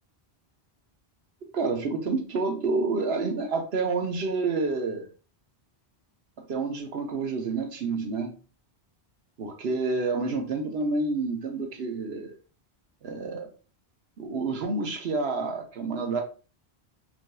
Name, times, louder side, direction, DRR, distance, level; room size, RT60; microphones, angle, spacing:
voice 1, 1.5-5.1 6.4-8.4 9.4-12.3 13.0-13.5 14.2-16.2, right 3 dB, 85° right, 4 dB, 1.1 m, -29 dB
5.9 x 2.7 x 2.2 m, 0.36 s
omnidirectional pair, 1.0 m